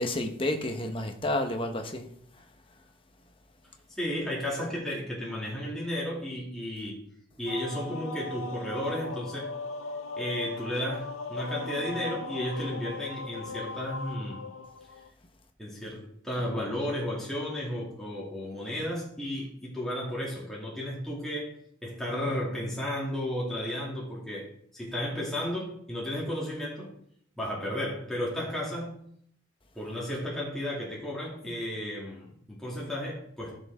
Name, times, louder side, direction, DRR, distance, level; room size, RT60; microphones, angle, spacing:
voice 1, 0.0-2.1 2.3-2.5, left 1 dB, 25° left, 1.2 m, -30 dB
voice 2, 3.9-7.0 7.4-9.5 10.2-14.5 15.6-21.5 21.8-26.9 27.4-29.0 29.7-33.6, left 1 dB, ahead, 2.6 m, -33 dB
sound 1, 7.5-15.1, left 3 dB, 80° left, 0.8 m, -38 dB
15.0 x 6.6 x 3.7 m
head